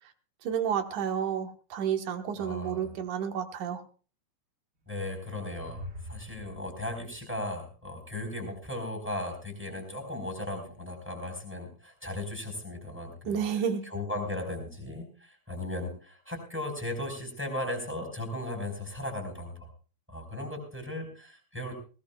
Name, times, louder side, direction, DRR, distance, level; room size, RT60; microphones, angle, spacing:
voice 1, 0.4-3.8 13.3-13.8, right 8 dB, 75° right, 6 dB, 2.7 m, -30 dB
voice 2, 2.4-3.0 4.9-19.7 20.1-21.7, left 1 dB, 5° right, 5 dB, 3.9 m, -37 dB
sound 1, 4.8-8.3, equal, 55° right, 0.7 m, -46 dB
19.5 x 18.5 x 2.3 m, 0.37 s
omnidirectional pair, 3.7 m